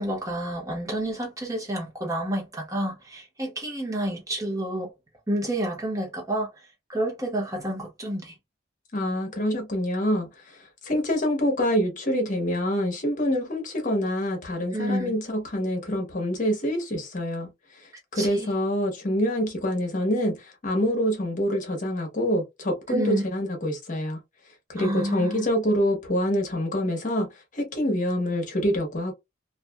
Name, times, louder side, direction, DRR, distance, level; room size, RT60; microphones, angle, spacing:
voice 1, 0.0-4.9 5.3-6.5 6.9-8.3 14.7-15.1 18.1-18.5 22.9-23.2 24.8-25.5, right 1 dB, 20° right, 1.1 m, -29 dB
voice 2, 8.9-17.5 17.8-24.2 24.7-29.1, equal, 45° left, 0.9 m, -26 dB
2.5 x 2.4 x 2.2 m
head